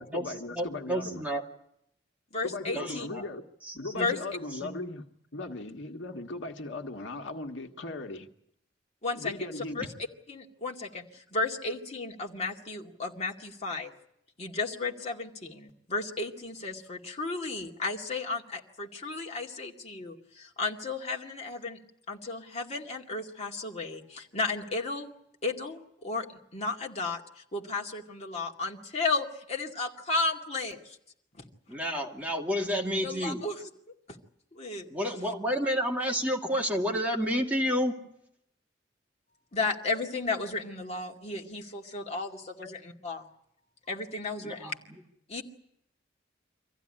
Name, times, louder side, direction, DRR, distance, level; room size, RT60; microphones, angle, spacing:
voice 1, 0.0-1.2 2.4-3.4 3.8-8.3 9.1-9.9 42.6-42.7, left 2 dB, 80° left, 4 dB, 1.6 m, -38 dB
voice 2, 0.5-1.4 2.7-3.2 3.7-4.1 4.6-4.8 31.7-33.4 34.9-37.9 44.4-44.7, equal, 10° right, -1 dB, 2.4 m, -30 dB
voice 3, 2.3-3.1 4.0-4.2 9.0-9.3 9.8-9.9 10.3-13.9 14.4-21.8 22.1-25.1 25.4-26.3 26.5-27.2 27.5-31.0 31.4-31.5 33.0-33.5 34.5-34.9 39.5-43.3 43.9-44.8 45.3-45.4, left 3 dB, 35° left, 1 dB, 2.3 m, -33 dB
25.0 x 15.0 x 10.0 m, 0.76 s
head